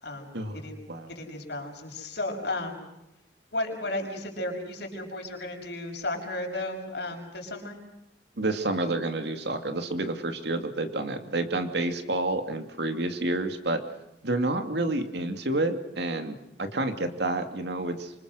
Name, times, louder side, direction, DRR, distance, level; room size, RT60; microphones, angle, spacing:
voice 1, 0.0-0.8 1.1-2.8 3.5-7.8, left 2 dB, 65° left, 3 dB, 6.4 m, -34 dB
voice 2, 8.4-13.8 14.2-18.1, right 2 dB, 65° right, 7 dB, 2.5 m, -29 dB
26.5 x 25.5 x 6.4 m, 0.90 s
head